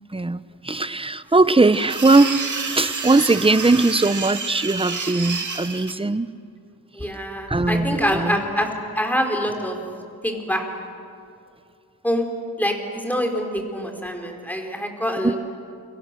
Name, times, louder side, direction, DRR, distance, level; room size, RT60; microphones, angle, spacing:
voice 1, 0.1-2.4 2.7-6.3 7.1-8.4 15.2-15.3, right 3 dB, 15° right, 15 dB, 0.8 m, -20 dB
sound 1, 1.6-5.9, right 4 dB, 50° right, 2.5 m, -29 dB
voice 2, 6.9-8.7 8.9-9.8 10.2-10.7 12.0-12.2 12.6-15.4, equal, 5° left, 3 dB, 4.4 m, -25 dB
29.0 x 24.5 x 7.7 m, 2.4 s
wide cardioid pair, 80°, 38 cm